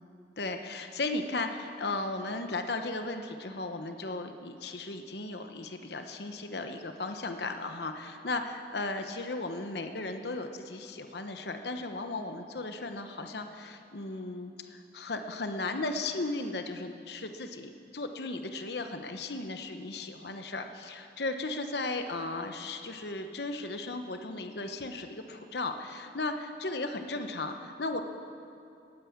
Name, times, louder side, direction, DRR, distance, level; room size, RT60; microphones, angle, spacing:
voice 1, 0.4-28.0, left 2 dB, 65° left, 7 dB, 1.0 m, -36 dB
18.5 x 9.6 x 7.2 m, 2.6 s
head